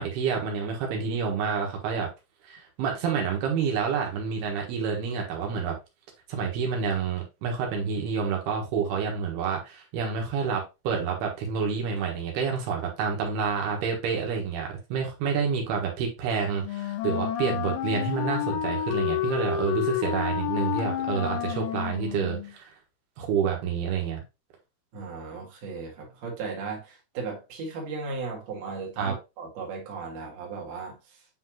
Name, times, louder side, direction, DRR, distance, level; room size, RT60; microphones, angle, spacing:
voice 1, 0.0-2.1 2.5-5.8 6.3-22.7 23.2-24.2 29.0-29.2, right 6 dB, 85° right, 3.4 m, -28 dB
Wind instrument woodwind instrument, 16.6-22.5, left 11 dB, 75° left, 2.6 m, -30 dB
voice 2, 24.9-31.0, right 4 dB, 50° right, 2.6 m, -36 dB
8.7 x 3.9 x 2.9 m
omnidirectional pair, 4.5 m